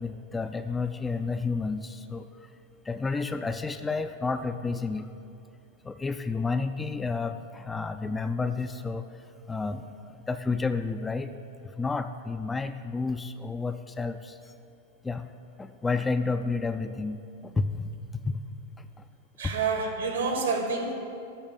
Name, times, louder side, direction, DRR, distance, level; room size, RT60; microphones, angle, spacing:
voice 1, 0.0-2.5 2.8-5.1 5.8-9.1 9.5-11.3 11.6-14.5 15.0-15.3 15.6-18.4 18.8-19.0 19.4-19.5, left 4 dB, 10° left, 9 dB, 0.4 m, -31 dB
voice 2, 19.4-20.9, right 4 dB, 70° right, 3 dB, 1.4 m, -28 dB
12.5 x 4.4 x 7.3 m, 2.7 s
figure-of-eight pair, 90°, 0 cm